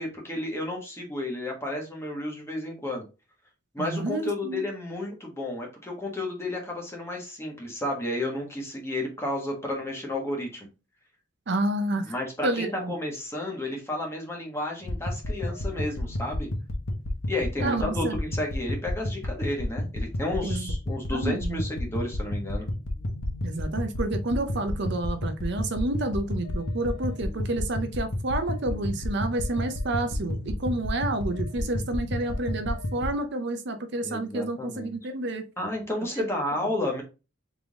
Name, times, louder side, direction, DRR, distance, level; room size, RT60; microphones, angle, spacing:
voice 1, 0.0-3.0 3.7-10.7 12.0-16.5 17.3-22.7 34.0-34.9 35.6-37.0, left 1 dB, 10° left, 0 dB, 1.2 m, -32 dB
voice 2, 3.8-4.7 11.5-12.0 12.4-12.9 17.6-18.1 20.4-20.7 21.1-21.7 23.4-35.4, right 2 dB, 55° right, 7 dB, 0.6 m, -29 dB
sound 1, 14.8-33.1, left 1 dB, 85° left, 1.1 m, -31 dB
3.7 x 3.4 x 3.6 m, 0.30 s
head